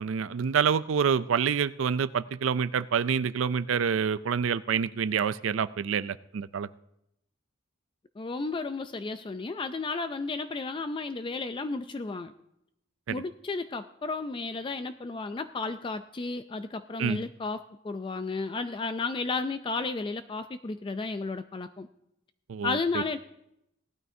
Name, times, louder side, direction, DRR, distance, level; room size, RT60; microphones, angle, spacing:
voice 1, 0.0-6.7 13.1-13.2 17.0-17.2 22.5-23.0, right 7 dB, 80° right, 16 dB, 0.4 m, -27 dB
voice 2, 8.2-12.3 13.1-21.9 22.6-23.2, left 3 dB, 25° left, 11 dB, 0.3 m, -33 dB
18.0 x 12.5 x 2.7 m, 0.79 s
head